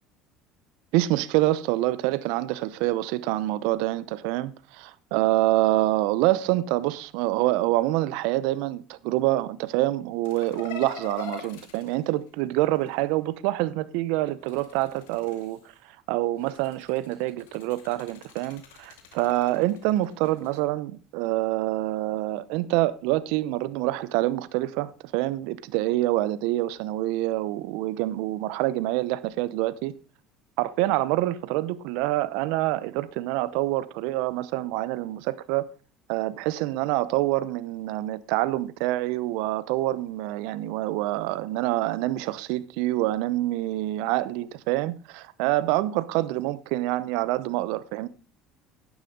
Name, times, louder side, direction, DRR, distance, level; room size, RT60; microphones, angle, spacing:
voice 1, 0.9-15.6 16.1-30.0 30.6-35.7 36.1-48.1, right 16 dB, 70° right, 0.8 m, -26 dB
sound 1, 10.2-13.0 14.3-15.8 16.4-20.6, left 6 dB, 85° left, 2.3 m, -44 dB
11.5 x 10.0 x 3.9 m
hypercardioid pair, 75°, 0 cm